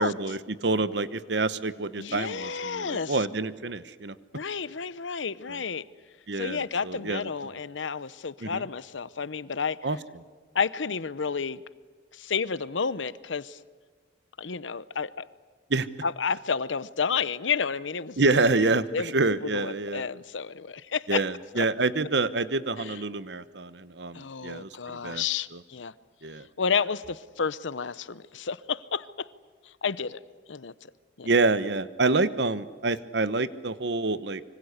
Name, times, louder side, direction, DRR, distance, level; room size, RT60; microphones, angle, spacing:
voice 1, 0.0-4.1 5.5-5.6 6.3-7.3 8.4-8.7 9.8-10.0 15.7-15.9 18.2-20.0 21.1-24.7 25.0-25.2 25.5-25.6 26.2-26.5 31.2-34.4, right 3 dB, 65° right, 14 dB, 1.1 m, -27 dB
voice 2, 2.0-3.2 4.3-5.8 6.4-9.8 10.5-11.6 12.1-13.6 14.4-15.1 16.0-19.1 19.4-21.2 21.5-21.7 22.8-22.9 24.1-25.9 26.6-29.3 29.8-30.2 30.5-30.7 31.2-31.3, left 5 dB, 90° left, 17 dB, 0.8 m, -31 dB
25.5 x 24.5 x 8.1 m, 1.5 s
head